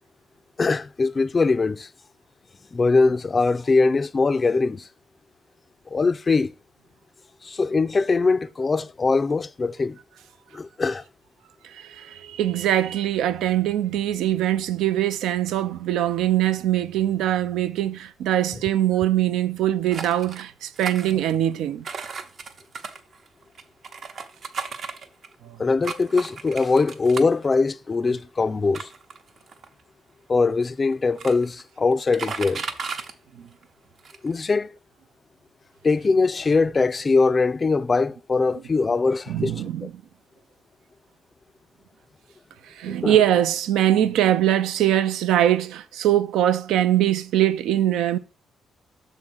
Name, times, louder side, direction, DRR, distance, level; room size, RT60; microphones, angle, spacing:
voice 1, 0.6-1.9 2.7-4.9 5.9-6.5 7.4-10.0 10.5-11.0 25.6-28.9 30.3-32.6 34.2-34.7 35.8-39.5 43.0-43.2, left 4 dB, 30° left, 0.4 m, -22 dB
voice 2, 11.6-21.9 25.4-25.6 33.3-33.5 39.3-39.9 42.6-48.2, right 12 dB, 85° right, 0.5 m, -22 dB
sound 1, 19.9-20.4 20.8-21.5 21.8-25.3 25.8-27.5 28.1-28.2 28.7-29.8 30.6-30.7 30.9-31.6 31.9-33.1 33.6-33.7 34.0-34.3, right 5 dB, 60° right, 0.9 m, -35 dB
6.5 x 3.7 x 6.1 m
cardioid pair, 90°, 0 cm